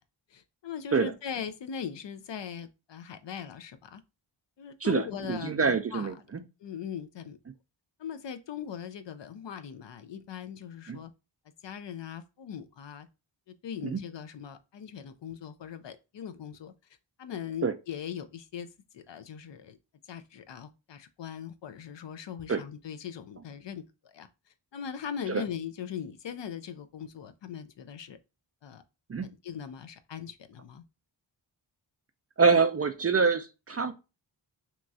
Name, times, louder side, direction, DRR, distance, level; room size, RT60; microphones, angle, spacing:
voice 1, 0.3-4.0 4.6-6.1 6.6-7.4 8.0-11.1 11.6-13.1 13.5-16.7 17.2-18.7 18.9-19.8 20.1-24.3 24.7-28.2 28.6-28.8 29.4-30.8, left 8 dB, 65° left, 0.5 m, -40 dB
voice 2, 5.3-6.4 10.9-11.0 13.8-14.0 17.6-17.7 22.5-22.6 25.3-25.4 29.1-29.3 32.4-33.9, right 5 dB, 35° right, 0.4 m, -25 dB
2.9 x 2.3 x 2.6 m
cardioid pair, 40°, 49 cm